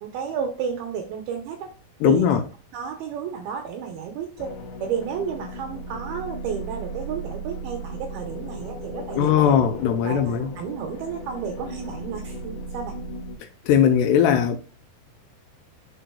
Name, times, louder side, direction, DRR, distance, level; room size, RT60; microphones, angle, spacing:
voice 1, 0.0-1.7 2.0-2.4 2.7-9.6 10.0-13.0, right 7 dB, 75° right, 2.4 m, -32 dB
voice 2, 2.0-2.4 9.2-10.5 13.4-14.6, left 8 dB, 80° left, 2.6 m, -19 dB
sound 1, 4.4-13.4, right 1 dB, 65° left, 3.3 m, -36 dB
11.5 x 3.9 x 2.2 m
omnidirectional pair, 5.1 m